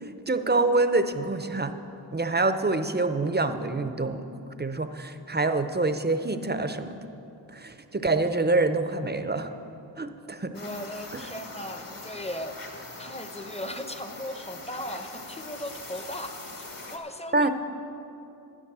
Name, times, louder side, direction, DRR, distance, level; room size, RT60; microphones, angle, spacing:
voice 1, 0.0-1.7 2.1-4.3 4.6-7.0 7.5-9.5 10.0-10.5 11.1-11.2 17.3-17.5, right 3 dB, 25° right, 9 dB, 0.7 m, -26 dB
sound 1, 10.5-17.0, left 2 dB, 50° left, 1.7 m, -42 dB
voice 2, 10.5-12.5 13.0-16.4 16.9-17.5, left 1 dB, 15° left, 8 dB, 0.9 m, -37 dB
12.5 x 9.5 x 6.1 m, 2.8 s
cardioid pair, 50°, 44 cm